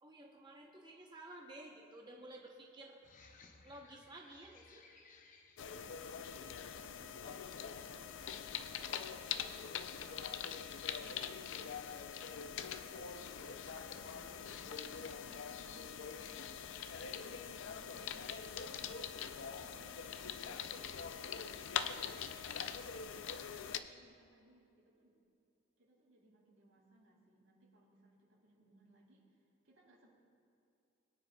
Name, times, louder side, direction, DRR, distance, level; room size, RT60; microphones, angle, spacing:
voice 1, 0.0-3.0 3.6-4.8 13.9-14.7 19.1-19.3, right 1 dB, 20° right, -1 dB, 0.8 m, -54 dB
sound 1, 3.0-11.4, left 4 dB, 40° left, 0.7 m, -66 dB
sound 2, 5.6-23.8, left 7 dB, 70° left, 0.4 m, -43 dB
voice 2, 6.8-9.6 10.0-11.5 12.2-13.9 14.4-16.8 17.2-21.8 22.5-25.2 25.8-30.1, right 1 dB, 90° right, -4 dB, 2.9 m, -66 dB
21.5 x 9.5 x 2.3 m, 2.6 s
head